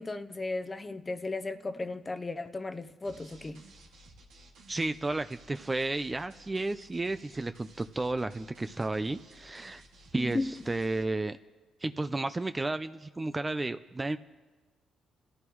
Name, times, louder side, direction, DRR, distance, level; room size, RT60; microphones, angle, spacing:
voice 1, 0.0-3.6 10.2-10.5, left 3 dB, 25° left, 0.8 m, -35 dB
sound 1, 3.0-11.0, right 2 dB, 85° right, 2.3 m, -56 dB
voice 2, 4.7-9.8 10.1-11.4 11.8-14.2, right 2 dB, 20° right, 0.5 m, -32 dB
29.0 x 14.0 x 3.1 m
cardioid pair, 90°, 0 cm